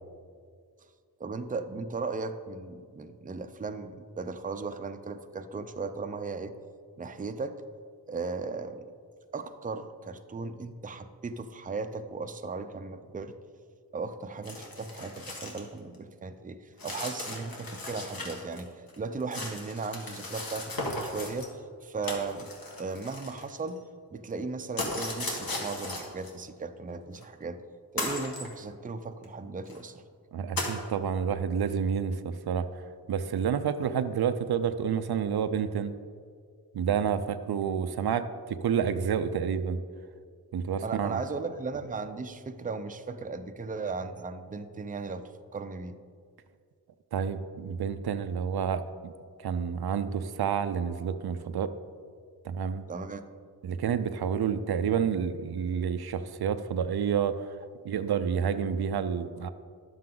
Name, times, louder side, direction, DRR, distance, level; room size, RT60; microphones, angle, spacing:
voice 1, 1.2-6.5 7.0-7.6 8.1-8.9 9.3-13.3 13.9-21.5 21.8-22.5 22.8-23.8 24.1-27.6 27.9-30.0 40.8-46.0 52.9-53.2, right 4 dB, 20° right, 8 dB, 0.5 m, -36 dB
sound 1, 14.4-15.7 15.9-16.0 16.8-18.6 18.9-21.5 22.0-23.8 24.8-26.3 27.1-27.2 28.0-28.5 29.2-29.3 29.7-29.8 30.6-30.8, left 2 dB, 60° left, 1.8 m, -36 dB
voice 2, 30.3-32.7 33.1-35.9 36.7-39.8 40.5-41.2 47.1-49.1 49.4-51.7 52.4-52.8 53.6-57.5 57.8-59.5, right 7 dB, 70° right, 11 dB, 0.5 m, -29 dB
11.0 x 7.6 x 3.8 m, 2.1 s
wide cardioid pair, 70°, 39 cm